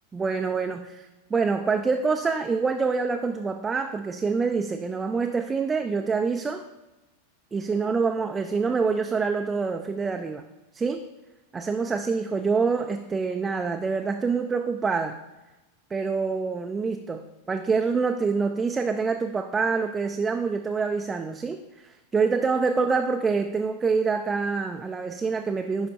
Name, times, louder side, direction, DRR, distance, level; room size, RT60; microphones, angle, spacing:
voice 1, 0.1-1.1 1.3-6.6 7.5-10.4 10.7-11.0 11.5-15.2 15.9-25.9, right 4 dB, 15° right, 5 dB, 0.3 m, -26 dB
9.5 x 5.1 x 2.6 m, 1.1 s
figure-of-eight pair, 90°, 0 cm